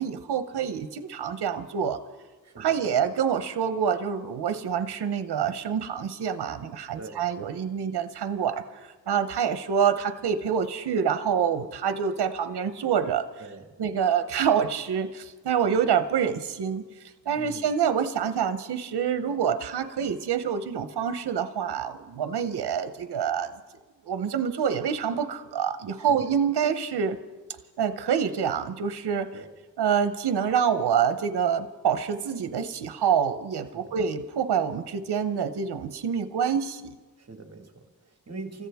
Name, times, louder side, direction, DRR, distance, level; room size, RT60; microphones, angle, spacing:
voice 1, 0.0-2.0 2.6-13.3 13.8-16.8 17.3-23.5 24.0-27.2 27.8-29.3 29.8-36.8, right 7 dB, 80° right, 10 dB, 0.8 m, -26 dB
voice 2, 2.4-2.7 7.0-7.2 13.4-13.7 17.3-17.7 26.1-26.2 29.3-29.5 33.7-33.9 37.2-38.7, right 3 dB, 40° right, 5 dB, 1.9 m, -43 dB
28.0 x 14.5 x 3.5 m, 1.3 s
cardioid pair, 70°, 39 cm